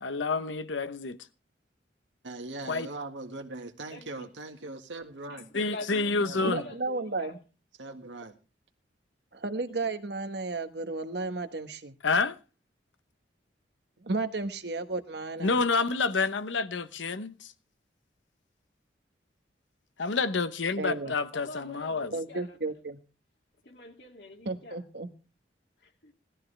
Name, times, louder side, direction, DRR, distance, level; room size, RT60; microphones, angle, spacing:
voice 1, 0.0-1.2 2.7-2.9 5.5-6.6 12.0-12.4 15.4-17.5 20.0-22.1, left 4 dB, 85° left, 0.9 m, -28 dB
voice 2, 2.2-5.5 6.2-6.7 7.8-8.3, right 2 dB, 85° right, 1.8 m, -41 dB
voice 3, 3.9-4.3 5.3-7.4 9.7-9.9 21.0-22.6 23.6-24.8 25.8-26.1, left 2 dB, 65° left, 2.5 m, -45 dB
voice 4, 6.4-7.4 9.3-12.0 14.0-15.5 20.8-21.1 22.1-23.0 24.4-25.1, right 3 dB, 60° right, 1.3 m, -33 dB
18.0 x 13.0 x 3.3 m
head